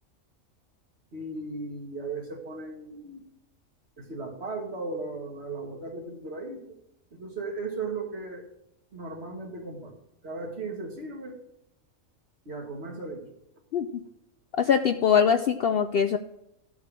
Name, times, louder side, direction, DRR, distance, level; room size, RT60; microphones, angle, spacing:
voice 1, 1.1-3.2 4.0-6.6 7.1-8.5 8.9-9.9 10.2-11.4 12.5-13.3, right 3 dB, 50° right, 1 dB, 2.1 m, -36 dB
voice 2, 14.6-16.2, left 7 dB, 60° left, 8 dB, 0.6 m, -22 dB
13.5 x 4.8 x 7.3 m, 0.83 s
omnidirectional pair, 1.4 m